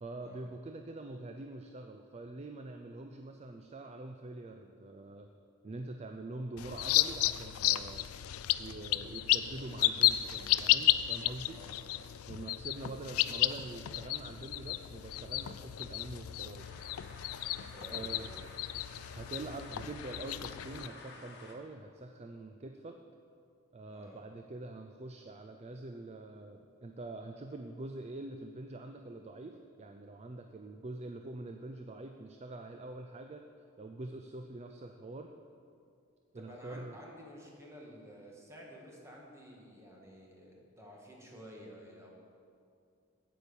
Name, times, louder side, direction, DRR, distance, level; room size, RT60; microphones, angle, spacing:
voice 1, 0.0-5.3 5.6-8.1 8.6-11.6 12.3-16.7 17.9-18.3 19.1-23.0 23.7-33.4 33.8-35.3 36.3-37.0, right 2 dB, 30° right, 5 dB, 0.4 m, -45 dB
sound 1, 6.6-20.9, left 14 dB, 90° left, 0.4 m, -33 dB
voice 2, 11.5-11.8 17.7-18.5 23.9-24.2 36.3-42.1, equal, 15° right, -2 dB, 1.8 m, -52 dB
sound 2, 16.5-21.5, left 3 dB, 55° left, 1.4 m, -52 dB
8.9 x 8.3 x 7.0 m, 2.4 s
head